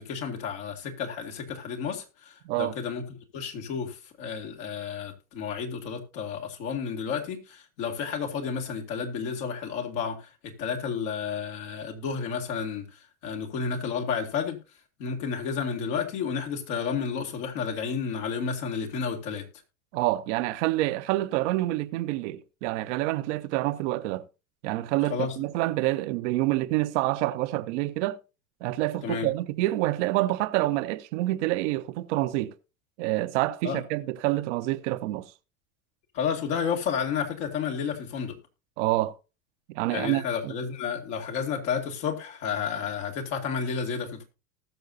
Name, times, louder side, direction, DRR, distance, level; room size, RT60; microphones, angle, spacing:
voice 1, 0.0-14.6 15.0-19.4 25.0-25.4 29.0-29.3 33.6-33.8 36.1-38.4 39.9-44.2, left 6 dB, 65° left, 2.4 m, -31 dB
voice 2, 2.4-2.8 19.9-24.2 24.6-28.2 28.6-32.5 33.0-35.3 38.8-39.1 39.7-40.5, right 17 dB, 65° right, 0.8 m, -27 dB
19.0 x 6.5 x 2.7 m
hypercardioid pair, 80°, 40 cm